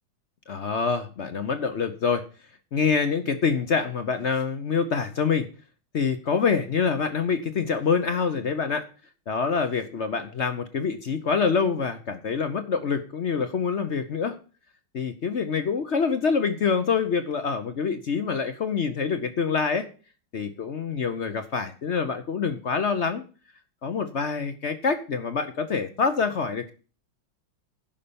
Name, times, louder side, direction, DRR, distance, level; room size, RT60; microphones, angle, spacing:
voice 1, 0.5-2.2 2.7-5.5 5.9-8.8 9.3-14.4 14.9-19.9 20.3-23.2 23.8-26.7, left 5 dB, 60° left, 10 dB, 0.7 m, -26 dB
10.5 x 5.6 x 6.8 m, 0.37 s
omnidirectional pair, 2.2 m